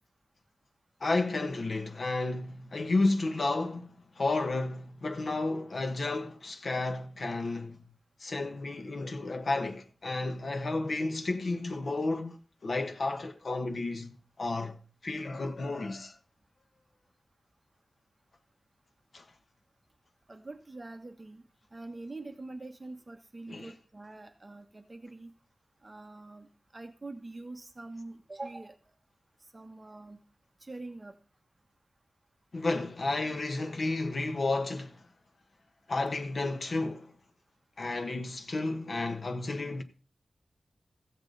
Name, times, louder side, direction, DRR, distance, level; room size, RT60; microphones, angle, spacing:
voice 1, 1.0-7.8 8.2-14.8 15.0-16.2 19.1-19.2 23.5-23.7 32.5-35.0 35.9-37.2 37.8-39.8, left 2 dB, 55° left, 1.2 m, -32 dB
voice 2, 20.3-21.4 21.7-25.3 25.8-28.8 29.5-30.2 30.6-31.1, right 2 dB, 25° right, 1.1 m, -44 dB
15.0 x 8.0 x 3.9 m
wide cardioid pair, 100°, 0 cm